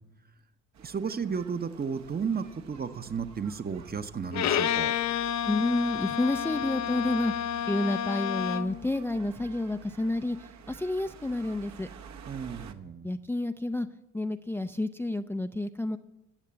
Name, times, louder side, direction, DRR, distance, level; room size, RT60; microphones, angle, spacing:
sound 1, 0.7-12.7, right 6 dB, 65° right, 1.1 m, -50 dB
voice 1, 0.8-4.9 12.3-13.1, right 6 dB, 30° right, 10 dB, 0.9 m, -33 dB
Bowed string instrument, 4.3-8.8, left 9 dB, 65° left, 0.7 m, -30 dB
voice 2, 5.4-11.9 13.0-13.9 14.1-16.0, left 2 dB, 10° left, 8 dB, 0.4 m, -30 dB
16.5 x 6.6 x 8.2 m, 1.0 s
cardioid pair, 90°, 30 cm